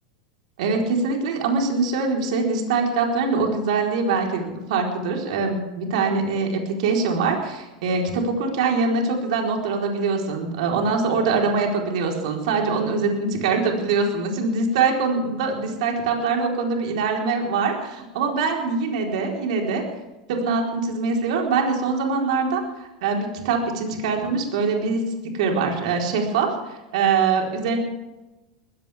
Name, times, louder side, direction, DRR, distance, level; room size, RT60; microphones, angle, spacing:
voice 1, 0.6-19.8 20.3-25.0 25.3-27.8, right 4 dB, 70° right, 1 dB, 4.2 m, -23 dB
21.0 x 16.5 x 3.6 m, 1.0 s
hypercardioid pair, 105°, 4 cm